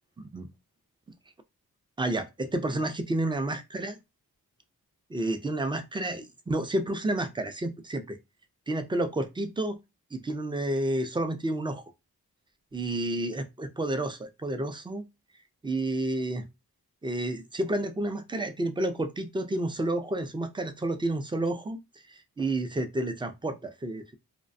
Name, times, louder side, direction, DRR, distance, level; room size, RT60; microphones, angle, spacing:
voice 1, 2.0-4.0 5.1-8.2 8.7-9.8 10.1-11.8 12.7-15.0 15.6-16.5 17.0-21.8 22.1-24.0, right 1 dB, 15° right, 0.3 m, -30 dB
2.4 x 2.1 x 2.5 m
cardioid pair, 50°, 39 cm